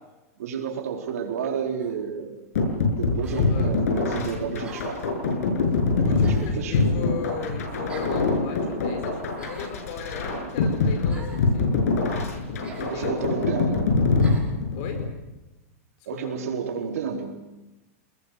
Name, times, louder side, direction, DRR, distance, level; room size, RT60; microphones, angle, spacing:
voice 1, 0.4-2.4 2.9-5.3 5.9-7.0 12.8-13.9 16.1-17.4, right 6 dB, 80° right, 2 dB, 4.4 m, -31 dB
sound 1, 1.8-2.0 3.2-3.5 4.6-5.1 6.2-6.6 7.9-8.2 9.3-9.8 11.1-11.5 12.6-12.9 14.2-14.5, right 4 dB, 15° right, 6.2 m, -45 dB
sound 2, 2.6-15.1, left 3 dB, 75° left, 7.4 m, -24 dB
voice 2, 3.3-3.8 5.6-11.8 12.6-13.2 14.7-15.1 16.1-16.3, left 6 dB, 50° left, 7 dB, 4.7 m, -38 dB
29.0 x 20.5 x 6.7 m, 1.0 s
supercardioid pair, 140°, 8 cm